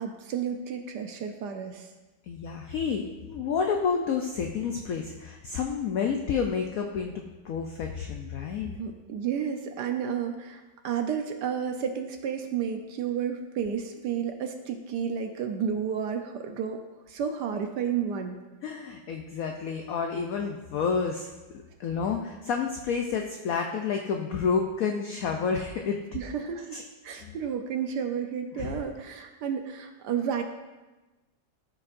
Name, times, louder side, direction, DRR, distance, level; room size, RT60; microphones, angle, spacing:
voice 1, 0.0-1.9 8.6-16.8 17.1-18.4 26.1-30.4, right 7 dB, 70° right, 5 dB, 1.1 m, -31 dB
voice 2, 2.3-7.1 7.4-8.7 18.6-21.3 21.8-26.0 26.7-26.8 27.2-27.3 28.6-28.8, left 6 dB, 80° left, 3 dB, 0.7 m, -29 dB
13.0 x 4.8 x 2.5 m, 1.2 s
omnidirectional pair, 2.1 m